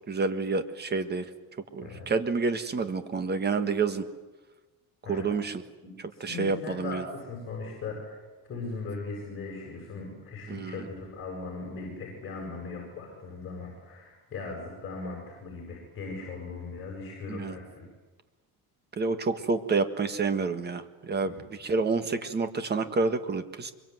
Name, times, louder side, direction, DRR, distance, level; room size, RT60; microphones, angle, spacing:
voice 1, 0.1-1.2 1.7-4.1 5.1-5.6 6.2-7.0 10.5-10.8 17.3-17.6 19.0-23.7, right 4 dB, 25° right, 10 dB, 1.6 m, -29 dB
voice 2, 5.8-17.9 21.2-21.5, left 3 dB, 35° left, -1 dB, 7.3 m, -39 dB
24.0 x 23.0 x 9.5 m, 1.2 s
cardioid pair, 155°, 39 cm